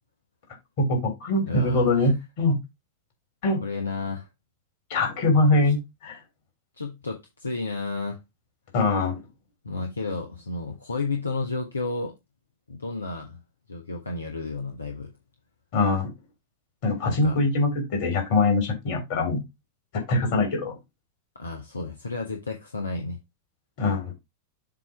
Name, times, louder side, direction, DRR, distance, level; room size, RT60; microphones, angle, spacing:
voice 1, 0.8-2.6 3.4-3.6 4.9-5.8 6.0-6.2 8.7-9.2 15.7-16.1 16.8-19.4 20.1-20.7 23.8-24.1, left 2 dB, 50° left, 3.3 m, -23 dB
voice 2, 1.5-2.1 3.6-4.3 5.5-5.6 6.8-8.2 9.6-12.1 12.7-13.4 13.7-15.1 17.0-17.4 21.3-23.2, left 3 dB, 75° left, 1.1 m, -32 dB
7.5 x 3.0 x 5.0 m
figure-of-eight pair, 90°, 0 cm